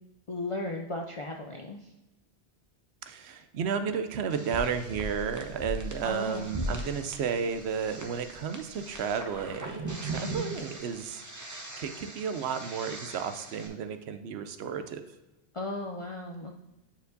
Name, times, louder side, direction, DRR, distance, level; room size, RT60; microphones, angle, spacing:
voice 1, 0.3-1.9 6.0-6.7 10.2-10.6 15.5-16.5, left 2 dB, 55° left, 1 dB, 0.3 m, -36 dB
voice 2, 3.0-11.2 11.8-15.0, right 6 dB, 75° right, 9 dB, 0.8 m, -33 dB
sound 1, 4.3-13.7, right 1 dB, 20° right, 0.6 m, -39 dB
9.2 x 4.5 x 2.6 m, 1.0 s
omnidirectional pair, 1.1 m